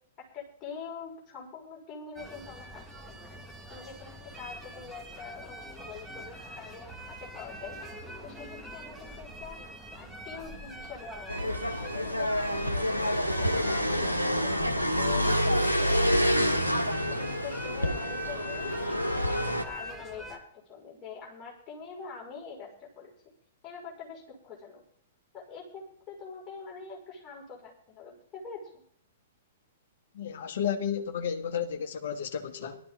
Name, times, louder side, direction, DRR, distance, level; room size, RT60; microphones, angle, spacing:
voice 1, 0.2-2.9 3.3-3.4 3.7-7.8 8.2-11.6 11.9-16.7 17.1-18.7 19.1-23.1 23.6-24.8 25.3-28.8, left 5 dB, 25° left, 5.7 m, -45 dB
sound 1, 2.2-20.4, equal, ahead, 1.8 m, -44 dB
sound 2, 11.3-19.6, equal, 90° left, 1.3 m, -27 dB
voice 2, 30.1-32.8, left 8 dB, 55° left, 1.5 m, -32 dB
18.0 x 12.5 x 3.8 m
figure-of-eight pair, 110°, 0 cm